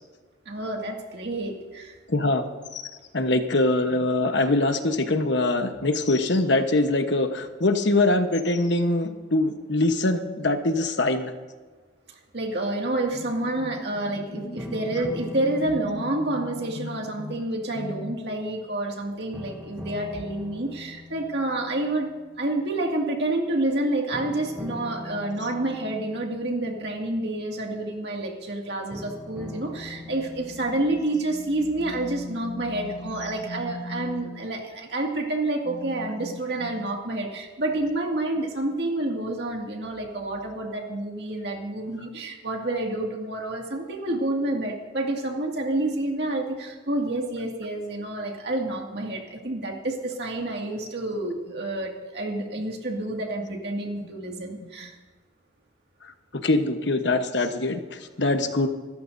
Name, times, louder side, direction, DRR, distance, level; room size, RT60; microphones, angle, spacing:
voice 1, 0.5-1.9 12.3-22.1 22.4-54.9, right 2 dB, 60° right, 1 dB, 2.2 m, -29 dB
voice 2, 2.1-2.5 2.7-11.3 14.4-14.6 16.8-16.9 17.2-17.3 17.7-17.9 32.1-34.3 56.4-58.7, left 2 dB, 65° left, 7 dB, 1.1 m, -24 dB
sound 1, 14.6-18.9 19.3-22.6 24.1-28.1 28.9-31.1, left 1 dB, 10° right, 0.9 m, -42 dB
26.5 x 13.5 x 2.7 m, 1.4 s
head